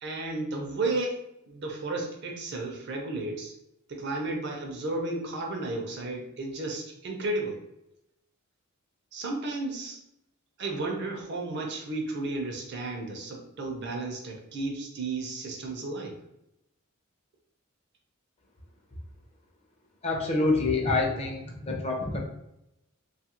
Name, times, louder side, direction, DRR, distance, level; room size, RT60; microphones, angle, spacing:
voice 1, 0.0-3.5 3.9-7.6 9.1-10.0 10.6-16.2, right 2 dB, 55° right, 1 dB, 0.6 m, -33 dB
voice 2, 20.0-22.2, left 3 dB, 30° left, 0 dB, 0.5 m, -27 dB
2.6 x 2.4 x 2.9 m, 0.83 s
head